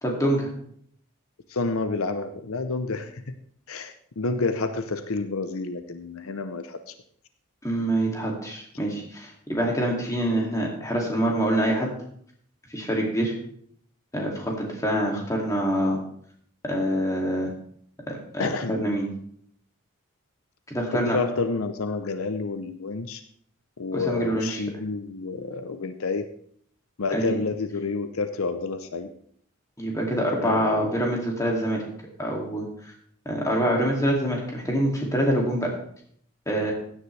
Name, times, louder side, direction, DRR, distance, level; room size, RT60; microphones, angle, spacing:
voice 1, 0.0-0.5 7.6-11.9 12.7-13.3 14.1-16.0 16.6-17.5 18.1-19.1 20.7-21.2 23.9-24.6 27.1-27.3 29.8-31.8 32.2-32.9 33.3-35.7 36.5-36.7, right 1 dB, 15° left, -1 dB, 2.4 m, -25 dB
voice 2, 1.5-3.3 3.7-6.9 15.1-15.2 18.4-18.8 20.9-23.2 23.8-26.3 27.0-29.1 30.4-30.8, left 3 dB, 75° left, 9 dB, 0.7 m, -29 dB
16.0 x 9.8 x 3.3 m, 0.64 s
head